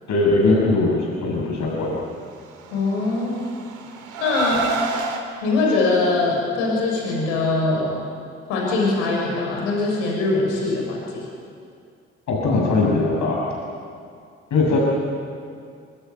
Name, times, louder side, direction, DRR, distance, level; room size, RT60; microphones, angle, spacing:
voice 1, 0.1-2.0 12.3-13.5 14.5-14.8, left 3 dB, 65° left, -3 dB, 6.7 m, -20 dB
voice 2, 2.7-3.3 4.2-4.6 5.4-8.0 8.5-11.2, left 3 dB, 85° left, -2 dB, 6.6 m, -22 dB
Car, 2.7-5.2, right 4 dB, 70° right, 3.4 m, -28 dB
25.0 x 24.0 x 9.4 m, 2.3 s
hypercardioid pair, 50°, 31 cm